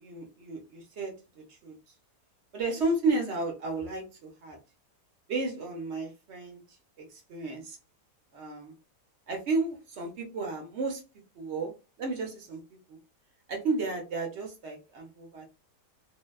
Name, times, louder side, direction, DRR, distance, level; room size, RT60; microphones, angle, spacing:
voice 1, 0.0-1.8 2.5-4.6 5.3-7.8 8.3-8.7 9.3-11.0 11.3-11.7 12.0-12.6 12.9-13.0 13.5-15.5, right 3 dB, 55° right, 2 dB, 0.8 m, -33 dB
2.7 x 2.1 x 2.2 m, 0.29 s
omnidirectional pair, 1.8 m